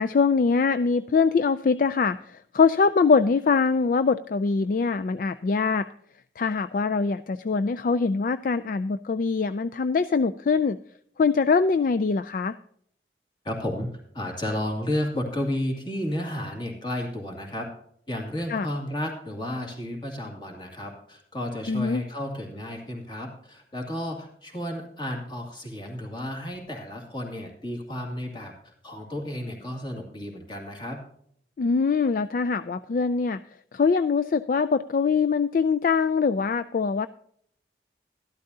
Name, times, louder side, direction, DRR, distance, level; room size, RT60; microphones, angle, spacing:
voice 1, 0.0-5.9 6.4-10.8 11.2-12.6 18.5-18.7 21.7-22.0 31.6-33.4 33.7-37.1, left 5 dB, 50° left, 11 dB, 0.3 m, -23 dB
voice 2, 13.4-13.9 14.1-17.7 18.1-31.0, left 1 dB, 25° left, 1 dB, 2.3 m, -32 dB
12.5 x 12.0 x 2.7 m, 0.68 s
head